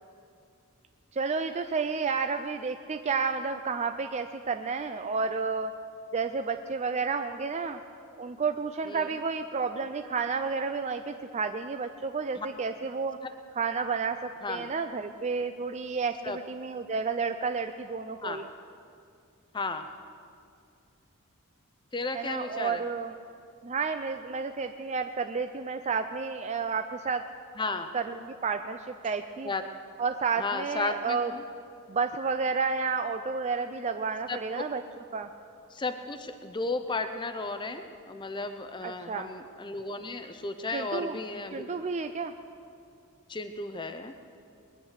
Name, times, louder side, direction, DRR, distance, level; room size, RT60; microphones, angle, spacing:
voice 1, 1.1-5.7 6.1-7.8 8.2-13.2 13.6-18.5 22.1-23.1 23.6-27.3 27.9-29.5 30.0-31.3 31.9-34.8 35.1-35.3 38.8-39.3 40.7-41.2 41.5-42.3, right 5 dB, 30° right, 7 dB, 0.4 m, -31 dB
voice 2, 19.5-19.9 21.9-22.8 27.6-27.9 29.4-29.6 30.3-31.4 34.3-34.4 35.7-41.8 43.3-44.1, left 3 dB, 20° left, 8 dB, 0.6 m, -34 dB
21.0 x 9.8 x 6.5 m, 2.4 s
head